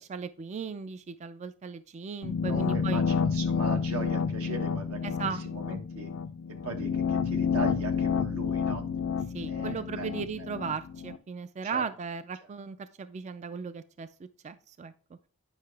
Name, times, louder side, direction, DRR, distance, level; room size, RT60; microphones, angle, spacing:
voice 1, 0.0-3.0 5.0-5.4 5.7-5.8 9.3-14.1 14.4-14.9, right 5 dB, 30° right, 13 dB, 0.3 m, -37 dB
sound 1, 2.2-11.2, left 6 dB, 65° left, 0.4 m, -29 dB
voice 2, 2.5-6.1 6.6-8.9 9.5-10.1 10.4-10.5 11.6-11.8 12.4-12.5, right 3 dB, 80° right, 5 dB, 1.4 m, -39 dB
9.5 x 5.6 x 3.3 m, 0.42 s
head